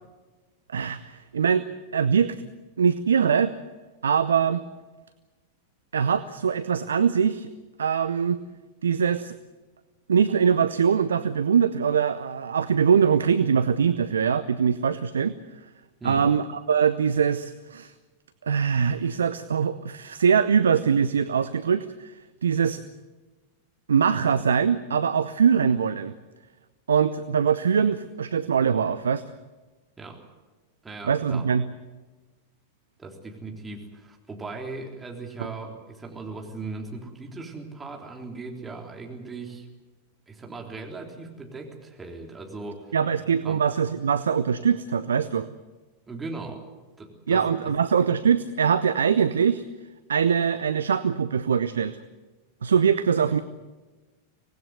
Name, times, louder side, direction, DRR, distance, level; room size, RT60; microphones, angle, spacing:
voice 1, 0.7-1.7 1.9-2.4 2.8-3.5 4.0-4.6 5.9-7.5 7.8-8.4 8.8-9.4 10.1-15.3 16.0-17.9 18.4-22.1 22.4-22.8 23.9-26.1 26.9-29.2 31.0-31.7 42.9-45.5 47.3-49.6 50.1-52.0 52.6-53.4, right 7 dB, 70° right, 13 dB, 0.7 m, -22 dB
voice 2, 30.8-31.4 33.0-39.7 40.3-43.0 43.4-43.6 46.1-46.6 47.0-47.7, right 3 dB, 15° right, 1 dB, 3.7 m, -38 dB
25.5 x 19.0 x 8.1 m, 1.2 s
figure-of-eight pair, 90°, 0 cm